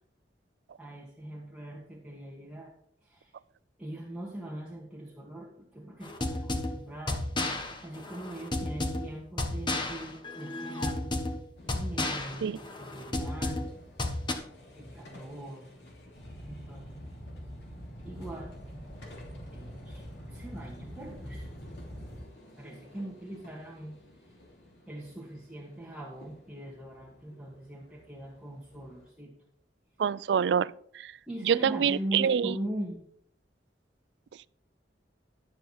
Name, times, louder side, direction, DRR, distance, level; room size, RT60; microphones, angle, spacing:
voice 1, 0.8-2.7 3.0-3.3 3.8-7.2 7.6-11.1 11.7-13.7 14.8-15.7 16.5-17.0 18.0-18.5 19.5-21.5 22.6-24.0 24.9-29.3 31.3-33.0, right 1 dB, 5° right, 1.7 m, -41 dB
sound 1, 6.0-14.3, left 2 dB, 25° left, 1.2 m, -33 dB
sound 2, 11.6-29.1, left 1 dB, 70° left, 3.0 m, -53 dB
sound 3, 16.1-22.2, equal, 55° left, 2.7 m, -44 dB
voice 2, 30.0-31.1 31.4-32.6, right 7 dB, 70° right, 0.3 m, -26 dB
11.5 x 7.9 x 4.2 m
head